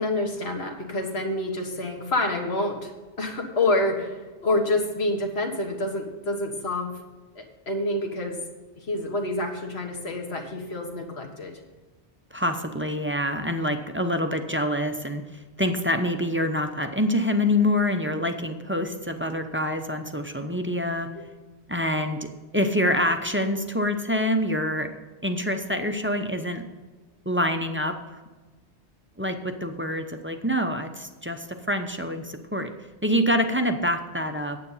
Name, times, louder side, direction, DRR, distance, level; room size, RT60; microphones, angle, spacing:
voice 1, 0.0-2.9 3.2-6.9 7.4-8.4 8.8-11.6, left 2 dB, 70° left, 3 dB, 1.8 m, -27 dB
voice 2, 12.3-21.1 21.7-22.3 22.5-24.9 25.2-26.6 27.3-28.2 29.2-32.7 33.0-34.6, left 1 dB, 15° right, 5 dB, 0.6 m, -26 dB
9.6 x 8.3 x 5.6 m, 1.3 s
omnidirectional pair, 1.1 m